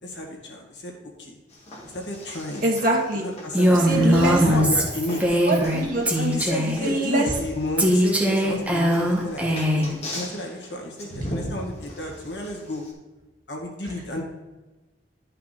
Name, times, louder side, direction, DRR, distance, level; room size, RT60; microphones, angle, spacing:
voice 1, 0.0-0.9 1.2-1.3 1.9-2.6 3.2-5.2 6.1-12.8 13.5-14.2, left 1 dB, 75° left, 0 dB, 2.1 m, -32 dB
sound 1, 1.5-12.9, equal, 35° left, 2.0 m, -38 dB
voice 2, 2.6-3.3 3.8-4.4 5.5-6.1 6.8-7.3 13.8-13.9, right 1 dB, 50° right, -1 dB, 2.1 m, -23 dB
Female speech woman speaking, 3.5-5.8 6.1-6.8 7.8-9.9, equal, 10° right, 1.5 m, -21 dB
11.5 x 5.6 x 4.2 m, 1.1 s
head